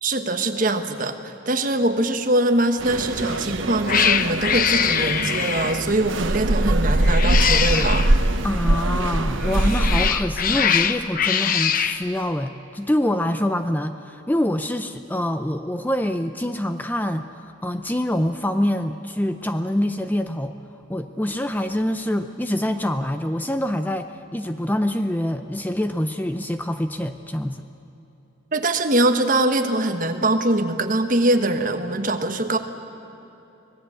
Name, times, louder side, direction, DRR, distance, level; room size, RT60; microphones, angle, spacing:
voice 1, 0.0-8.1 10.5-10.6 28.5-32.6, right 1 dB, 45° right, 6 dB, 1.3 m, -22 dB
sound 1, 2.8-10.1, right 1 dB, 85° right, 1.1 m, -22 dB
Cat, 3.1-3.4 3.9-5.9 7.0-8.1 9.4-12.0, left 7 dB, 45° left, 0.8 m, -23 dB
voice 2, 8.4-20.6 20.9-27.6, left 1 dB, 10° left, 8 dB, 0.5 m, -25 dB
25.0 x 19.0 x 8.5 m, 3.0 s
head